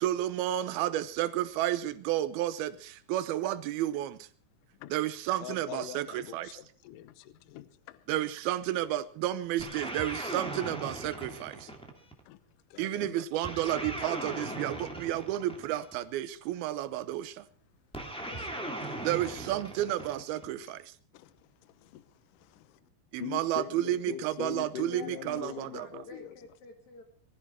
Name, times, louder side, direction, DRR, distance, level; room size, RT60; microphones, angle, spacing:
voice 1, 0.0-4.3 4.9-6.5 8.1-11.7 12.8-17.4 19.0-20.9 23.1-26.0, right 13 dB, 75° right, 2.5 m, -31 dB
voice 2, 5.4-8.0 12.3-12.4 12.7-13.3 18.3-19.0 20.6-20.7 21.1-21.4 21.6-22.8 23.2-26.4, left 12 dB, 90° left, 1.9 m, -43 dB
sound 1, 9.6-12.2 13.4-16.0 17.9-20.5, right 1 dB, 5° left, 1.0 m, -38 dB
voice 3, 24.8-27.0, left 2 dB, 60° left, 2.2 m, -50 dB
20.5 x 14.0 x 4.6 m
omnidirectional pair, 5.1 m